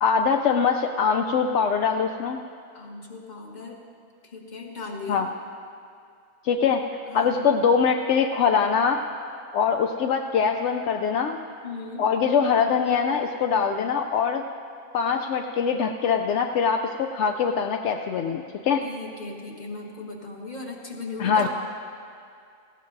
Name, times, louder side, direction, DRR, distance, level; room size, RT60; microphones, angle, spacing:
voice 1, 0.0-2.4 5.1-5.3 6.4-6.8 7.1-9.0 9.5-11.4 12.0-14.4 14.9-18.8 21.2-21.5, left 6 dB, 70° left, 4 dB, 0.7 m, -23 dB
voice 2, 2.7-3.8 4.2-5.3 7.1-7.4 11.6-12.0 18.8-21.5, left 3 dB, 30° left, -1 dB, 1.4 m, -37 dB
18.5 x 16.0 x 2.7 m, 2.4 s
omnidirectional pair, 1.6 m